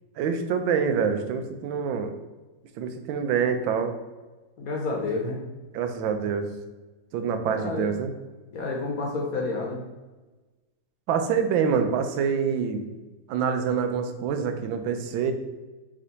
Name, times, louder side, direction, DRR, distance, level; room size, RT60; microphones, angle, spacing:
voice 1, 0.2-2.1 2.8-3.9 5.7-6.5 7.1-8.1 11.1-12.8 13.3-15.3, right 6 dB, 85° right, 7 dB, 1.3 m, -26 dB
voice 2, 4.6-5.4 7.5-7.9 8.5-9.8, left 3 dB, 60° left, -1 dB, 1.0 m, -29 dB
3.7 x 3.2 x 3.9 m, 1.2 s
omnidirectional pair, 2.1 m